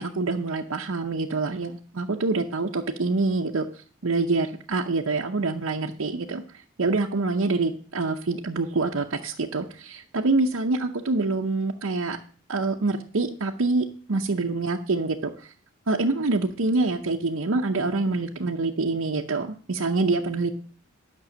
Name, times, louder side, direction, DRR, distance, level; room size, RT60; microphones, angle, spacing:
voice 1, 0.0-12.2 12.5-15.5 15.9-20.5, right 3 dB, 70° right, 0 dB, 0.7 m, -26 dB
12.0 x 6.1 x 6.1 m, 0.44 s
head